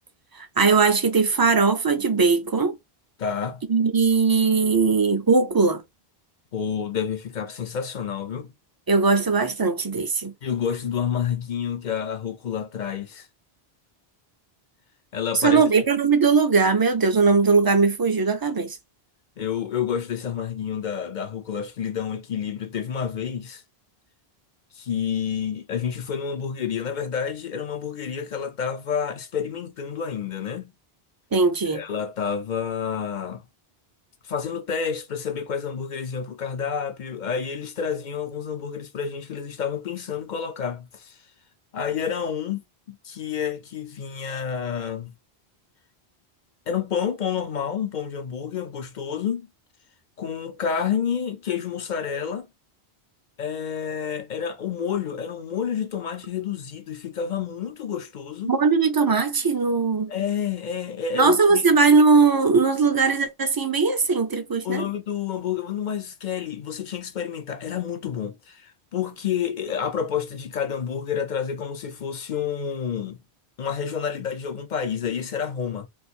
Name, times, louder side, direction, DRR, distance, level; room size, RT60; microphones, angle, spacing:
voice 1, 0.3-2.8 3.7-5.8 8.9-10.3 15.3-18.8 31.3-31.8 58.4-60.1 61.1-64.8, right 4 dB, 35° right, 0.3 m, -20 dB
voice 2, 3.2-3.6 6.5-8.5 10.4-13.3 15.1-15.6 19.4-23.6 24.7-30.7 31.7-33.4 34.2-41.2 41.7-45.1 46.7-49.5 50.2-52.5 53.4-58.5 60.1-61.6 64.6-73.2 73.6-75.9, left 7 dB, 55° left, 0.6 m, -29 dB
2.5 x 2.4 x 4.1 m
omnidirectional pair, 1.1 m